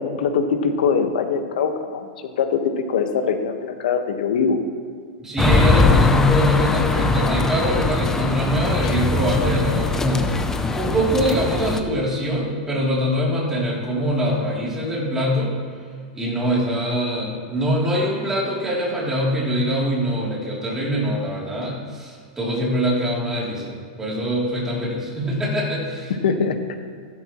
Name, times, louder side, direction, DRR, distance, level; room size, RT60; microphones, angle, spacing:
voice 1, 0.0-2.1 2.4-2.6 2.9-4.6 8.8-9.0 26.2-26.8, left 6 dB, 75° left, 6 dB, 1.5 m, -22 dB
voice 2, 5.2-10.3 10.7-15.5 16.1-26.1, equal, 10° right, -5 dB, 3.3 m, -23 dB
sound 1, 5.4-11.8, left 3 dB, 10° left, 0.6 m, -20 dB
15.0 x 13.0 x 3.2 m, 2.2 s
supercardioid pair, 155°, 5 cm